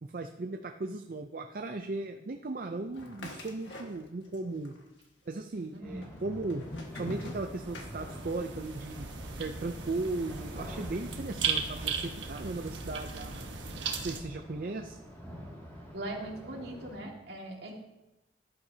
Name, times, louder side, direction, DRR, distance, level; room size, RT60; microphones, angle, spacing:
voice 1, 0.0-4.8 5.3-6.6 6.9-9.1 9.4-13.3 14.0-15.0, right 2 dB, 50° right, 5 dB, 0.5 m, -37 dB
sound 1, 2.9-4.4 4.6-5.4 6.0-8.5, left 1 dB, 80° left, 1.6 m, -44 dB
voice 2, 5.7-6.1 15.9-17.7, right 1 dB, 65° right, 0 dB, 2.0 m, -40 dB
sound 2, 5.8-17.0, equal, 15° left, 2.3 m, -47 dB
sound 3, 6.6-14.2, right 5 dB, 90° right, 1.1 m, -37 dB
13.0 x 11.5 x 2.8 m, 0.98 s
head